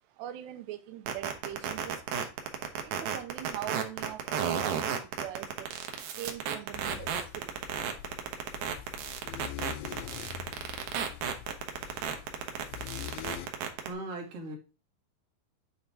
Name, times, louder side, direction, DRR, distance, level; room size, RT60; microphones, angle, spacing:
voice 1, 0.2-2.3 3.0-4.9 5.2-5.7 6.2-7.1 7.4-7.5, right 12 dB, 85° right, 2.8 m, -41 dB
sound 1, 1.1-13.9, right 8 dB, 70° right, 2.6 m, -32 dB
sound 2, 6.7-13.5, left 13 dB, 80° left, 2.4 m, -44 dB
voice 2, 12.0-12.8 13.6-14.6, right 2 dB, 45° right, 2.3 m, -42 dB
9.6 x 3.8 x 4.4 m
omnidirectional pair, 4.8 m